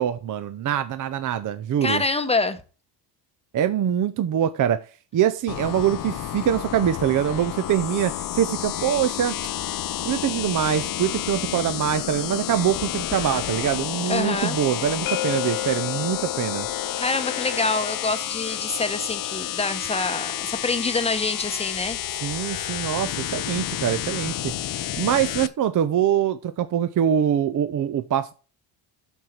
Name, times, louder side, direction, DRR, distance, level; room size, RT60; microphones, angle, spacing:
voice 1, 0.0-2.0 3.5-4.8 5.1-9.4 10.0-16.7 22.2-28.3, right 10 dB, 40° right, 0.6 m, -24 dB
voice 2, 1.8-2.6 14.1-14.6 17.0-22.0, left 3 dB, 15° left, 0.9 m, -26 dB
sound 1, 5.5-25.5, left 12 dB, 45° left, 0.6 m, -30 dB
sound 2, 15.1-20.9, left 15 dB, 80° left, 0.8 m, -35 dB
9.0 x 6.4 x 4.4 m
cardioid pair, 145°, 47 cm